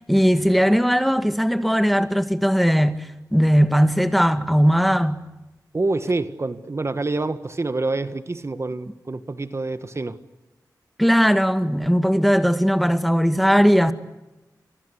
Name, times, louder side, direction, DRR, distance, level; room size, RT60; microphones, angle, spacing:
voice 1, 0.0-5.2 11.0-13.9, equal, ahead, 2.1 m, -18 dB
voice 2, 5.7-10.2, right 2 dB, 40° right, 1.7 m, -26 dB
29.0 x 24.5 x 8.3 m
wide cardioid pair, 65°, 7 cm